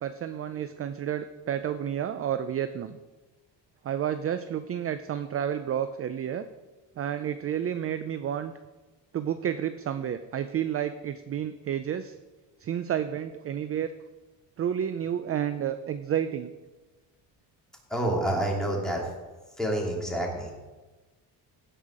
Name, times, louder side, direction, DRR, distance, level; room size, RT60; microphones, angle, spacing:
voice 1, 0.0-3.0 3.8-6.4 7.0-8.5 9.1-12.2 12.6-13.9 14.6-16.5, right 9 dB, 35° right, 11 dB, 0.4 m, -30 dB
voice 2, 17.9-19.0 19.6-20.6, right 1 dB, ahead, -2 dB, 2.4 m, -28 dB
16.0 x 5.6 x 4.9 m, 1.2 s
cardioid pair, 125°, 44 cm